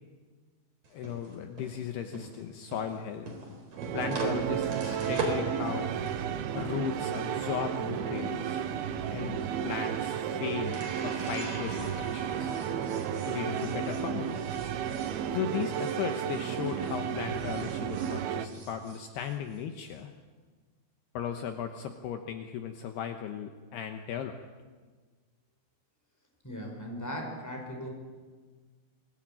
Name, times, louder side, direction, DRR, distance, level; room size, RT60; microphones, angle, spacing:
sound 1, 0.8-17.0 17.3-19.9, right 2 dB, 35° right, 4.6 m, -43 dB
voice 1, 0.9-3.3 3.9-5.9 6.5-8.7 9.1-12.5 13.3-14.4 15.3-20.1 21.1-24.3, left 8 dB, 70° left, 6 dB, 2.9 m, -36 dB
sound 2, 3.8-18.5, right 9 dB, 70° right, 2.7 m, -33 dB
voice 2, 26.4-27.9, equal, 5° left, 1 dB, 4.7 m, -38 dB
25.5 x 19.5 x 8.9 m, 1.4 s
omnidirectional pair, 5.2 m